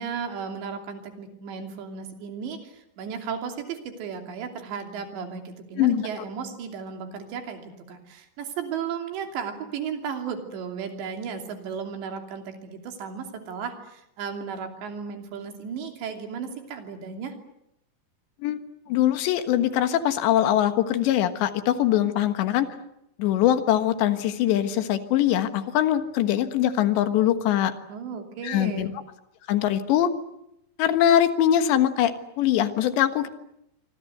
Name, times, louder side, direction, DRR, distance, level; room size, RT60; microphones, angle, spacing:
voice 1, 0.0-17.3 27.9-28.9, right 6 dB, 85° right, 5 dB, 5.2 m, -35 dB
voice 2, 18.9-22.7 23.2-27.7 28.4-28.9 29.5-30.1 30.8-33.3, left 11 dB, 85° left, 9 dB, 3.8 m, -22 dB
26.0 x 25.5 x 8.0 m, 0.80 s
omnidirectional pair, 4.9 m